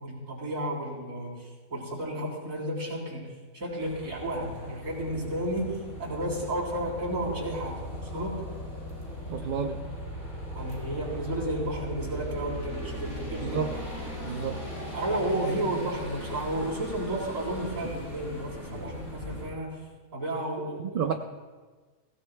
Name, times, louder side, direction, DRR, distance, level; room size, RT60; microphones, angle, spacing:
voice 1, 0.0-3.3 3.5-7.8 8.1-8.4 10.5-13.7 14.9-19.8 20.1-21.1, right 1 dB, 75° right, -4 dB, 4.2 m, -32 dB
sound 1, 3.8-19.5, equal, 85° left, 4.1 m, -39 dB
voice 2, 9.3-9.8 13.4-13.7 14.2-14.6 20.8-21.1, right 7 dB, 55° right, 4 dB, 0.6 m, -30 dB
23.0 x 16.5 x 2.2 m, 1.4 s
omnidirectional pair, 1.5 m